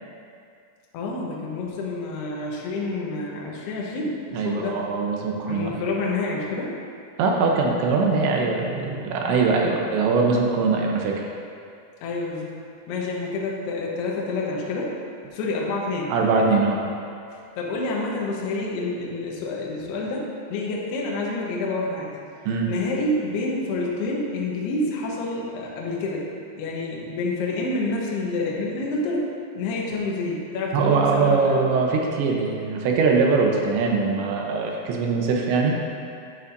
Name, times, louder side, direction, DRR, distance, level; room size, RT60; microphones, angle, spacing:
voice 1, 0.9-4.8 5.5-6.8 12.0-12.5 12.9-14.9 15.3-16.1 17.3-22.1 22.7-26.3 26.6-29.3 29.5-31.7, left 2 dB, 70° left, -3 dB, 2.8 m, -28 dB
voice 2, 4.3-5.8 7.2-11.2 16.1-16.8 22.5-22.7 30.7-35.8, right 4 dB, 80° right, 0 dB, 3.0 m, -22 dB
11.5 x 8.9 x 2.6 m, 2.4 s
omnidirectional pair, 5.4 m